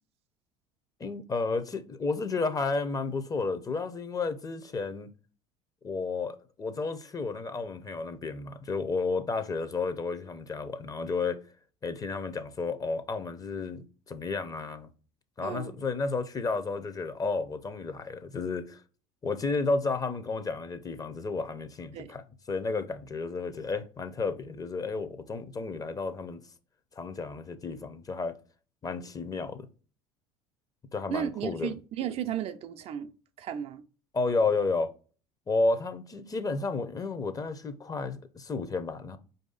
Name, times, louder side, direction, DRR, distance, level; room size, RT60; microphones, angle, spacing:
voice 1, 1.0-5.1 5.8-11.4 11.8-14.9 15.4-18.8 19.2-26.4 27.0-28.4 28.8-29.7 30.9-31.7 34.1-34.9 35.5-39.2, left 3 dB, 25° left, 0.7 m, -32 dB
voice 2, 15.4-15.7 21.9-22.1 31.1-33.1 33.4-33.8, right 9 dB, 50° right, 0.4 m, -34 dB
4.7 x 2.7 x 3.9 m
hypercardioid pair, 80°, 13 cm